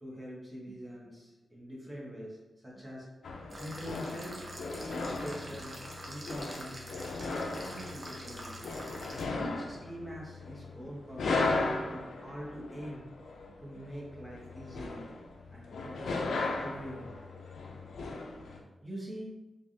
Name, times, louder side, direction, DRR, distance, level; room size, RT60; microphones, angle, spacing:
voice 1, 0.0-2.4 2.6-3.1 3.6-4.3 4.9-5.8 6.1-6.8 7.2-8.6 9.3-13.0 13.6-15.1 15.5-17.2 17.9-18.0 18.8-19.3, equal, 10° right, -5 dB, 1.0 m, -44 dB
sound 1, 3.2-18.6, left 3 dB, 85° left, 0.3 m, -37 dB
sound 2, 3.5-9.2, right 1 dB, 40° right, 0.6 m, -46 dB
3.3 x 2.3 x 2.6 m, 1.1 s
wide cardioid pair, 85°, 0 cm